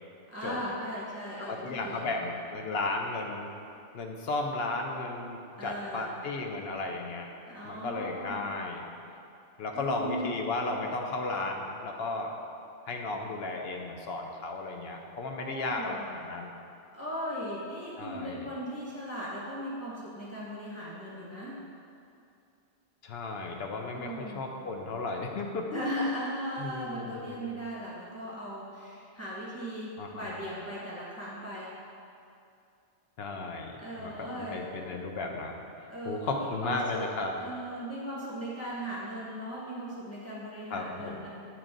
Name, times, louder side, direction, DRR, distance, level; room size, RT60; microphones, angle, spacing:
voice 1, 0.3-2.3 5.6-6.3 7.5-8.5 9.7-10.3 15.4-16.1 16.9-21.6 23.9-24.5 25.7-31.7 33.8-34.7 35.9-37.1 37.4-41.3, equal, 15° left, -8 dB, 1.4 m, -38 dB
voice 2, 1.4-3.5 3.9-7.3 7.6-8.8 9.6-12.3 12.9-16.5 18.0-18.5 23.0-25.8 26.6-27.5 30.0-30.3 33.2-35.6 36.1-37.3 40.7-41.3, left 3 dB, 65° left, 2 dB, 0.7 m, -34 dB
8.4 x 3.0 x 3.7 m, 2.5 s
omnidirectional pair, 1.2 m